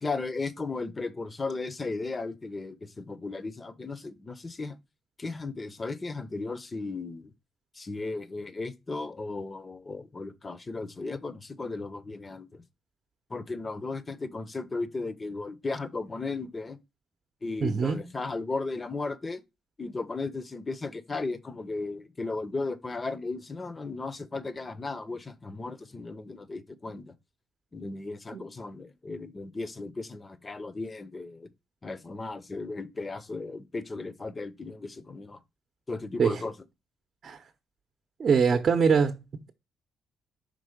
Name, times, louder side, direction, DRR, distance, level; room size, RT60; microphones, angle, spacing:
voice 1, 0.0-4.8 5.2-7.3 7.7-12.6 13.3-16.8 17.4-19.4 19.8-27.1 27.7-31.5 31.8-35.4 35.9-36.5 38.5-38.7, left 3 dB, 25° left, 0.7 m, -35 dB
voice 2, 17.6-18.0 28.3-28.4 36.2-36.4 37.2-37.4 38.2-39.2, right 6 dB, 50° right, 0.8 m, -23 dB
5.3 x 3.7 x 5.0 m
cardioid pair, 90°, 0 cm